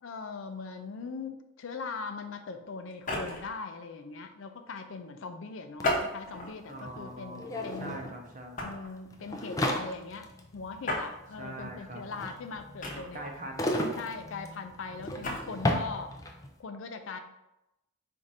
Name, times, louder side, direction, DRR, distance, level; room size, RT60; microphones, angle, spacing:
voice 1, 0.0-8.0 8.6-13.2 14.0-16.2 16.6-17.2, left 4 dB, 75° left, 7 dB, 0.4 m, -40 dB
sound 1, 2.9-3.6 5.8-6.6 7.2-7.4 8.6-8.9 10.8-11.1 12.8-13.4 15.0-15.4, left 1 dB, 40° left, 0.8 m, -33 dB
sound 2, 5.8-5.9 6.1-16.5, left 1 dB, 15° left, 0.4 m, -35 dB
voice 2, 6.7-8.7 11.4-12.0 12.9-14.0, right 1 dB, 40° right, 1 dB, 0.7 m, -43 dB
4.6 x 2.6 x 4.0 m, 0.91 s
head